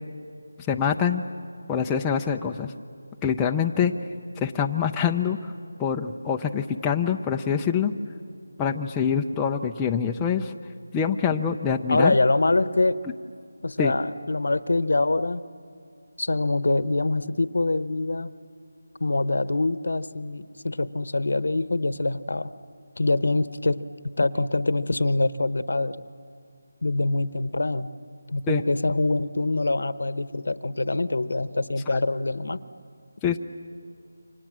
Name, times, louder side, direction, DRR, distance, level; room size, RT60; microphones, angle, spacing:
voice 1, 0.7-1.2 1.7-2.7 3.2-3.9 4.4-5.5 5.8-7.9 8.6-10.5 10.9-12.1 13.8-13.9 28.5-28.6 33.2-33.4, left 7 dB, 10° left, 1 dB, 0.5 m, -25 dB
voice 2, 11.9-13.0 13.6-15.4 16.2-18.3 19.0-22.5 23.0-25.9 26.8-27.9 28.3-32.6, left 2 dB, 70° left, 15 dB, 1.0 m, -24 dB
29.0 x 25.5 x 7.5 m, 2.4 s
figure-of-eight pair, 170°, 0 cm